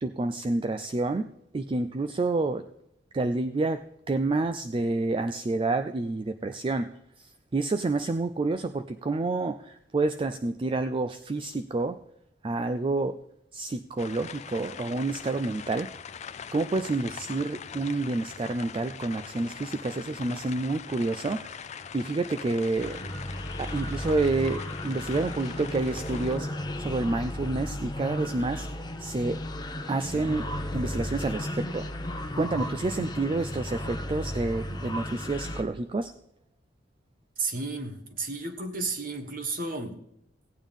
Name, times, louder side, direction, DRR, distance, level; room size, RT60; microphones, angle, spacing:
voice 1, 0.0-2.7 3.1-6.9 7.2-12.0 12.4-13.2 13.5-15.9 16.5-23.1 23.6-26.5 26.8-29.4 29.9-30.5 30.7-31.9 32.4-36.1, right 3 dB, 30° right, 10 dB, 0.4 m, -29 dB
sound 1, 14.0-26.4, left 7 dB, 40° left, 0.4 m, -42 dB
sound 2, 22.8-35.6, left 1 dB, 25° left, 0.9 m, -34 dB
voice 2, 37.4-40.0, right 3 dB, 50° right, 5 dB, 1.4 m, -33 dB
16.5 x 9.0 x 3.6 m, 0.79 s
head